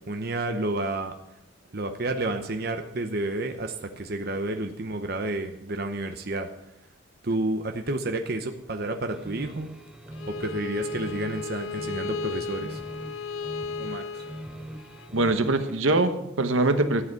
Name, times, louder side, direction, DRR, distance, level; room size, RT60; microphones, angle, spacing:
voice 1, 0.1-1.1 1.7-6.5 7.2-9.7 10.3-12.8 13.8-14.2, right 2 dB, 50° right, 6 dB, 0.9 m, -30 dB
sound 1, 9.1-15.8, right 1 dB, 5° right, 1.1 m, -42 dB
Bowed string instrument, 10.1-15.1, left 4 dB, 75° left, 0.4 m, -35 dB
voice 2, 15.1-17.0, right 2 dB, 80° right, 8 dB, 1.1 m, -23 dB
13.0 x 7.8 x 6.9 m, 0.87 s
head